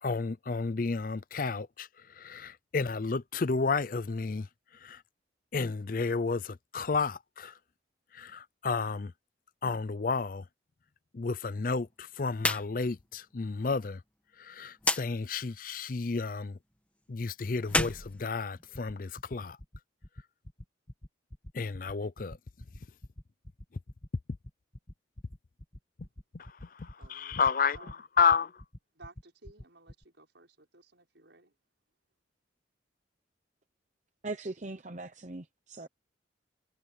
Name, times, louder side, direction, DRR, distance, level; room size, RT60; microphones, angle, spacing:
voice 1, 0.0-4.5 4.8-5.0 5.5-7.5 8.1-9.1 9.6-10.4 11.1-14.0 14.4-16.6 17.1-19.6 21.5-22.4 26.3-28.6, left 4 dB, 45° left, 0.5 m, -31 dB
sound 1, 12.3-12.7 13.0-13.1 14.8-15.0 17.6-18.9, left 2 dB, 5° left, 1.9 m, -30 dB
sound 2, 18.7-30.0, left 1 dB, 30° left, 1.9 m, -46 dB
voice 2, 27.0-27.4 27.8-28.0 29.0-31.5, right 3 dB, 70° right, 5.8 m, -56 dB
voice 3, 34.2-35.9, right 2 dB, 40° right, 0.8 m, -40 dB
head